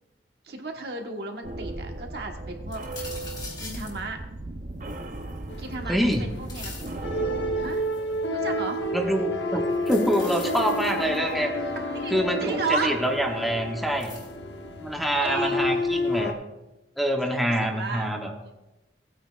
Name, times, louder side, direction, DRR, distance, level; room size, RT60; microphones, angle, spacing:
voice 1, 0.4-2.8 3.6-4.2 5.6-6.9 7.5-7.8 8.3-8.8 11.9-12.1 12.4-13.0 15.2-15.6 17.2-18.1 18.4-18.5, right 3 dB, 60° right, 3 dB, 1.3 m, -33 dB
sound 1, 1.4-7.7, right 2 dB, 45° right, 0.7 m, -36 dB
sound 2, 2.7-4.0 4.9-5.7 6.1-7.0 7.7-8.2 9.7-11.3 13.0-13.1 14.0-14.3, left 4 dB, 25° left, 2.3 m, -42 dB
sound 3, 5.5-16.3, left 1 dB, 75° left, 1.1 m, -30 dB
voice 2, 5.9-6.2 8.9-11.5 12.1-14.1 14.8-16.3 17.0-18.3, equal, ahead, 2 dB, 0.9 m, -26 dB
17.5 x 9.3 x 2.4 m, 1.0 s
head